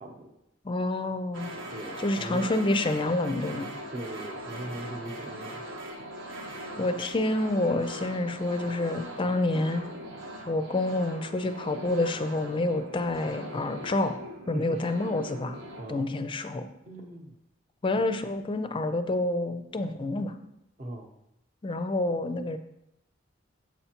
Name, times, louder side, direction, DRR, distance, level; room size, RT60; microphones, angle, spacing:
voice 1, 0.0-0.3 1.7-2.5 3.9-5.8 14.5-14.8 15.8-16.1 16.9-17.4 20.8-21.1, right 1 dB, 40° right, 2 dB, 0.8 m, -39 dB
voice 2, 0.6-1.5 2.0-3.7 6.8-9.8 10.5-14.2 14.5-15.6 15.9-16.7 17.8-20.3 21.6-22.6, left 2 dB, 25° left, 9 dB, 0.4 m, -28 dB
sound 1, 1.3-15.8, right 1 dB, 85° right, 1.1 m, -41 dB
7.4 x 5.6 x 2.9 m, 0.83 s
head